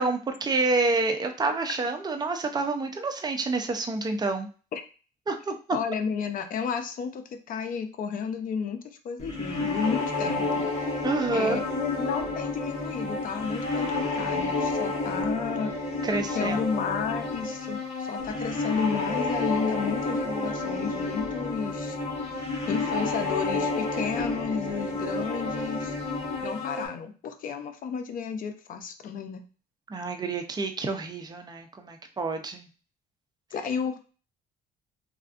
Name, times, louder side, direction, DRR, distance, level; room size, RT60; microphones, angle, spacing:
voice 1, 0.0-4.5 5.3-5.5 11.0-11.6 16.0-16.6 29.9-32.7, right 3 dB, 25° right, 5 dB, 0.5 m, -28 dB
voice 2, 5.7-8.8 9.0-10.7 11.3-15.7 16.3-22.0 22.7-25.9 26.4-29.4 33.5-34.1, left 6 dB, 55° left, 7 dB, 0.5 m, -32 dB
sound 1, 9.2-26.9, left 3 dB, 40° left, 1.4 m, -30 dB
3.3 x 2.5 x 2.4 m, 0.36 s
cardioid pair, 110°, 17 cm